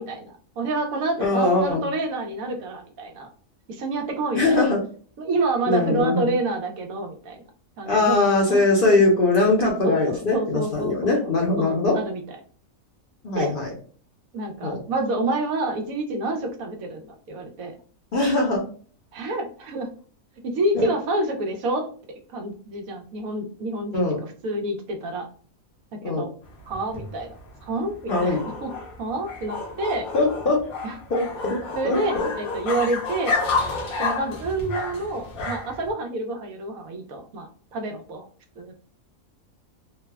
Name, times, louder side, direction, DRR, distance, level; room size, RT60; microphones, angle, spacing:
voice 1, 0.0-3.3 3.7-4.6 5.2-7.4 7.8-8.2 8.5-9.0 9.8-10.9 11.2-11.3 11.6-12.4 13.4-13.5 14.3-17.7 19.1-19.9 20.4-21.9 22.3-25.3 25.9-26.3 26.7-27.3 27.6-28.7 29.0-30.1 30.8-31.0 31.7-33.4 34.0-38.3 38.6-38.7, right 2 dB, 85° right, 3 dB, 1.1 m, -28 dB
voice 2, 1.2-1.8 4.3-4.8 5.7-6.3 7.9-12.0 13.2-13.7 14.6-14.8 18.1-18.6 20.7-20.9 23.9-24.2 26.0-26.2 28.1-28.4 30.1-30.6 31.1-31.6 31.8-32.3, left 2 dB, 50° left, -1 dB, 0.7 m, -21 dB
sound 1, 26.5-35.9, left 4 dB, 80° left, 1.3 m, -30 dB
3.2 x 2.1 x 2.2 m, 0.42 s
omnidirectional pair, 1.4 m